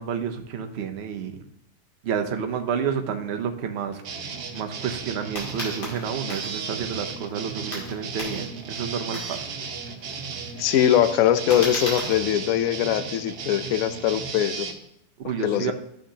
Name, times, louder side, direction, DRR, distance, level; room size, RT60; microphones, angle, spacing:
voice 1, 0.0-1.4 2.0-4.0 4.5-9.5 15.2-15.7, right 7 dB, 50° right, 6 dB, 0.8 m, -30 dB
sound 1, 4.0-14.7, right 5 dB, 85° right, 1.5 m, -35 dB
sound 2, 5.3-12.2, left 1 dB, 85° left, 2.9 m, -37 dB
voice 2, 10.6-14.7 15.4-15.7, left 11 dB, 70° left, 11 dB, 0.9 m, -22 dB
13.0 x 6.3 x 2.8 m, 0.76 s
omnidirectional pair, 1.7 m